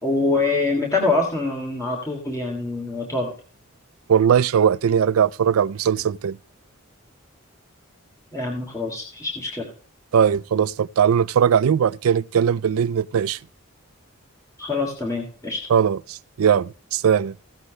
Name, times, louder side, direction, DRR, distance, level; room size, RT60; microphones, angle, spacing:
voice 1, 0.0-3.3 8.3-9.7 14.6-15.6, left 3 dB, 15° left, 2.8 m, -25 dB
voice 2, 4.1-6.4 10.1-13.4 15.7-17.3, right 8 dB, 85° right, 0.4 m, -19 dB
16.5 x 8.0 x 3.2 m
head